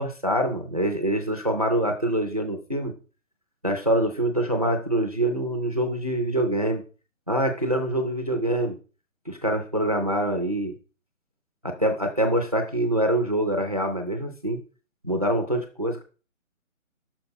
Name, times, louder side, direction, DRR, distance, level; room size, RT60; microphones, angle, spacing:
voice 1, 0.0-2.9 3.6-6.8 7.3-8.8 9.3-10.7 11.6-14.6 15.0-16.0, right 1 dB, 30° right, 5 dB, 0.5 m, -25 dB
6.4 x 4.4 x 4.5 m, 0.35 s
figure-of-eight pair, 160°, 41 cm